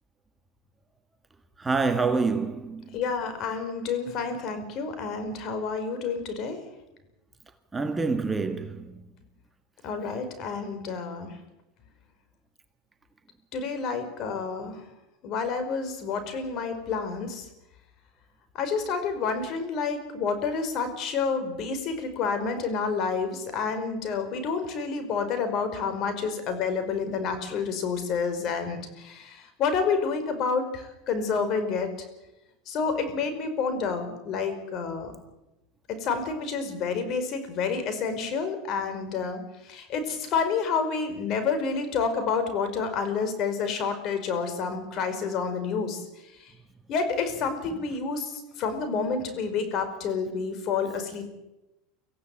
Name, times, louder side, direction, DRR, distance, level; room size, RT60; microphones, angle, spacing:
voice 1, 1.6-3.0 7.7-9.1, right 4 dB, 15° right, 1.4 m, -27 dB
voice 2, 2.9-6.6 9.8-11.4 13.5-14.8 15.2-17.5 18.5-32.1 32.7-35.1 35.9-46.5 46.9-51.3, left 5 dB, 45° left, 5.2 m, -29 dB
24.5 x 15.5 x 8.7 m
supercardioid pair, 130°, 0 cm